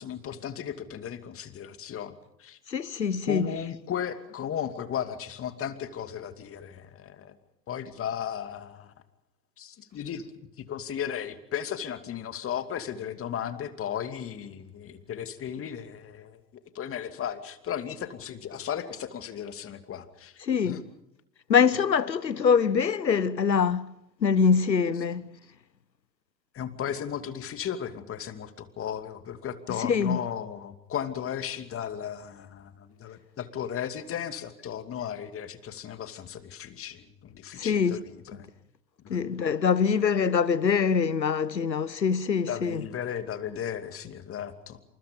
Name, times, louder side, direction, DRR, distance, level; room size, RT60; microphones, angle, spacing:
voice 1, 0.0-2.6 3.3-7.3 7.7-8.9 9.6-10.2 10.7-16.4 16.7-20.8 26.5-38.5 39.0-39.2 42.5-44.8, left 9 dB, 25° left, 2.6 m, -35 dB
voice 2, 2.7-3.5 20.4-20.8 21.5-23.9 24.2-25.3 29.8-30.2 37.6-38.0 39.1-42.8, left 6 dB, 85° left, 1.2 m, -24 dB
28.5 x 27.5 x 5.3 m
figure-of-eight pair, 95°, 50 cm